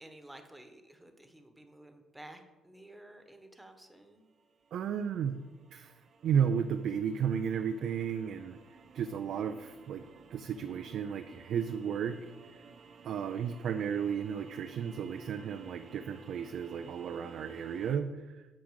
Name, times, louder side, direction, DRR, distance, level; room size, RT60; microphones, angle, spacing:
voice 1, 0.0-4.3, right 1 dB, 5° right, 6 dB, 1.2 m, -53 dB
sound 1, 3.5-18.0, right 5 dB, 45° right, 0.9 m, -55 dB
voice 2, 4.7-5.4 5.7-5.9 6.2-8.6 8.9-10.0 10.3-12.2 12.5-12.6 13.0-18.5, right 7 dB, 65° right, 7 dB, 0.5 m, -33 dB
8.4 x 6.2 x 6.4 m, 1.2 s
cardioid pair, 110°, 0 cm